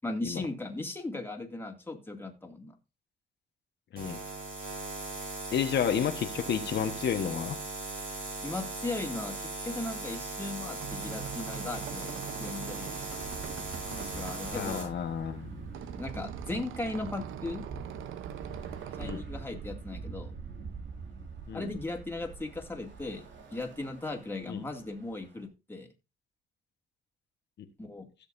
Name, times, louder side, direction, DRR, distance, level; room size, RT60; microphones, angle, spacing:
voice 1, 0.0-2.7 8.4-13.1 13.9-14.9 16.0-17.6 19.0-20.3 21.5-25.9 27.8-28.1, left 2 dB, 10° left, 2 dB, 2.4 m, -37 dB
sound 1, 4.0-14.8, right 2 dB, 50° right, 6.8 m, -39 dB
voice 2, 5.5-7.6 14.5-15.7 19.0-19.2 21.5-21.7 24.5-24.6 27.6-27.7, left 8 dB, 60° left, 5 dB, 1.3 m, -31 dB
sound 2, 10.6-19.2, right 10 dB, 85° right, 0.9 m, -43 dB
Bus / Traffic noise roadway noise, 13.0-25.4, right 5 dB, 70° right, 2.6 m, -44 dB
16.0 x 6.6 x 2.6 m, 0.28 s
cardioid pair, 90°, 20 cm